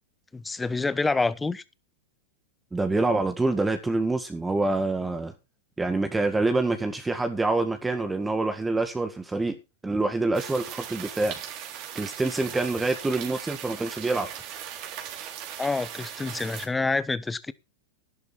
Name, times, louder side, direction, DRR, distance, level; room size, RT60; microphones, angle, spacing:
voice 1, 0.3-1.6 15.6-17.5, left 3 dB, 10° left, 1.0 m, -27 dB
voice 2, 2.7-5.3 5.8-9.6 9.8-11.4 12.0-14.3, right 2 dB, 10° right, 1.8 m, -26 dB
sound 1, 10.3-16.7, right 10 dB, 45° right, 3.4 m, -38 dB
11.5 x 11.5 x 4.4 m
hypercardioid pair, 110°, 0 cm